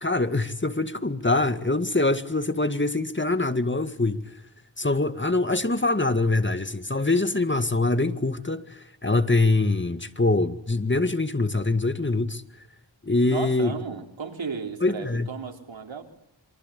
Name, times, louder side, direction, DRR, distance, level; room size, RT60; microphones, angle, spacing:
voice 1, 0.0-4.4 4.8-12.4 13.0-13.7 14.8-15.3, left 2 dB, 25° left, 2.0 m, -24 dB
voice 2, 13.3-16.0, right 5 dB, 90° right, 3.6 m, -34 dB
28.0 x 25.0 x 8.4 m
wide cardioid pair, 55°, 45 cm